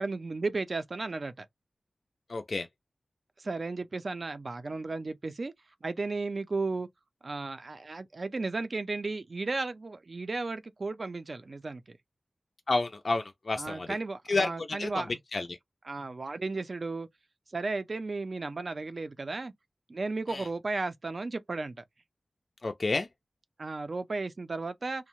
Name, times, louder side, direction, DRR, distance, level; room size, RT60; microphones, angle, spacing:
voice 1, 0.0-1.5 3.4-5.5 5.8-6.9 7.2-12.0 13.6-15.2 15.9-17.1 17.5-19.5 19.9-21.8 23.6-25.1, right 3 dB, 45° right, 0.4 m, -34 dB
voice 2, 2.3-2.7 12.7-14.0 14.3-15.6 20.3-20.5 22.6-23.1, left 3 dB, 50° left, 0.3 m, -30 dB
2.7 x 2.1 x 2.9 m
wide cardioid pair, 110°, 0 cm